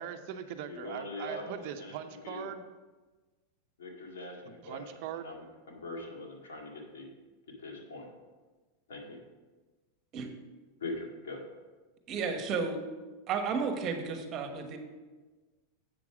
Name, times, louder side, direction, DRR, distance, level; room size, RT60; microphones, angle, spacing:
voice 1, 0.0-2.6 4.6-5.3, right 9 dB, 60° right, 8 dB, 0.7 m, -40 dB
voice 2, 0.7-1.9 2.2-2.5 3.8-4.8 5.2-7.1 7.6-8.1 8.9-9.2 10.8-11.4, left 2 dB, 85° left, 0 dB, 2.0 m, -42 dB
voice 3, 12.1-12.8 13.3-14.8, right 5 dB, 40° right, 5 dB, 1.2 m, -32 dB
8.0 x 6.1 x 4.8 m, 1.3 s
hypercardioid pair, 125°, 0 cm